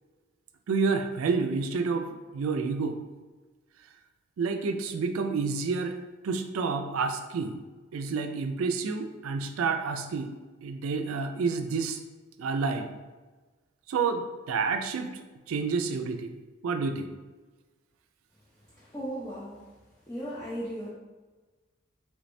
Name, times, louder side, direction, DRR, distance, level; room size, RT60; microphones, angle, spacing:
voice 1, 0.7-2.1 2.3-3.0 4.4-6.0 6.2-7.6 7.9-10.3 10.6-12.0 12.4-13.0 13.9-15.2 15.5-16.4 16.6-17.1, right 4 dB, 85° right, 7 dB, 0.4 m, -29 dB
voice 2, 18.7-19.6 20.1-20.9, equal, 15° left, -10 dB, 0.5 m, -36 dB
3.4 x 3.2 x 2.6 m, 1.3 s
head